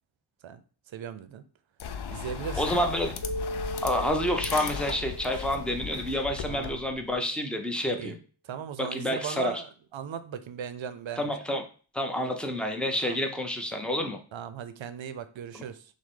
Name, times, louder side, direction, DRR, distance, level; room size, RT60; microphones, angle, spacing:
voice 1, 0.9-1.4 2.1-3.1 6.4-6.8 7.8-8.1 8.4-11.3 12.2-12.3 13.0-13.2 14.3-15.9, right 8 dB, 85° right, 0.6 m, -38 dB
sound 1, 1.8-7.2, left 6 dB, 60° left, 0.5 m, -36 dB
voice 2, 2.6-3.2 3.8-8.2 8.8-9.5 11.2-11.6 11.9-14.2 15.5-15.6, equal, ahead, 0.6 m, -29 dB
Keyboard (musical), 3.2-6.4, equal, 40° left, 1.5 m, -38 dB
6.1 x 2.1 x 3.7 m
wide cardioid pair, 135°, 45 cm